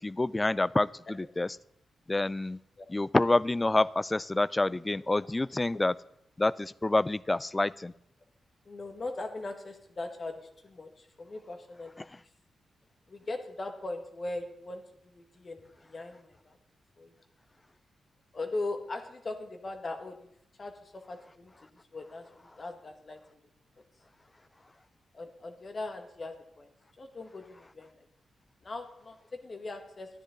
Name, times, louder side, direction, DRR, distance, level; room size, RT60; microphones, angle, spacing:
voice 1, 0.0-1.6 2.1-2.6 2.9-5.9 6.4-7.9, left 2 dB, 20° left, 20 dB, 0.3 m, -27 dB
voice 2, 8.6-12.3 13.1-16.6 17.0-17.1 18.3-20.3 20.6-23.4 25.1-28.1 28.6-30.1, left 2 dB, 40° left, 5 dB, 1.7 m, -40 dB
13.0 x 10.0 x 3.8 m, 0.77 s
cardioid pair, 80°, 0 cm